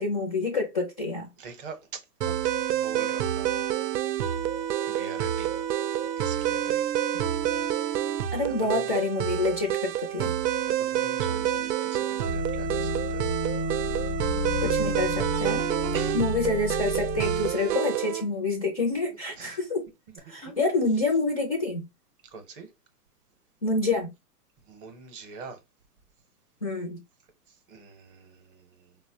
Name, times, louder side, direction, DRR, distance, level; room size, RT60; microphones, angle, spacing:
voice 1, 0.0-1.3 8.3-10.4 14.6-15.7 16.1-19.9 20.3-21.9 23.6-24.1 26.6-27.0, left 3 dB, 25° left, 0.4 m, -27 dB
voice 2, 1.4-3.6 4.9-5.6 6.2-6.9 7.2-7.9 8.5-8.9 10.7-13.3 15.9-16.5 19.1-19.6 20.1-20.3 22.2-22.7 24.6-25.6 27.5-29.0, right 5 dB, 35° right, 0.7 m, -44 dB
sound 1, 2.2-18.2, right 11 dB, 80° right, 0.5 m, -28 dB
sound 2, 12.3-17.5, left 5 dB, 65° left, 0.6 m, -33 dB
4.0 x 2.1 x 2.6 m
hypercardioid pair, 135°, 49 cm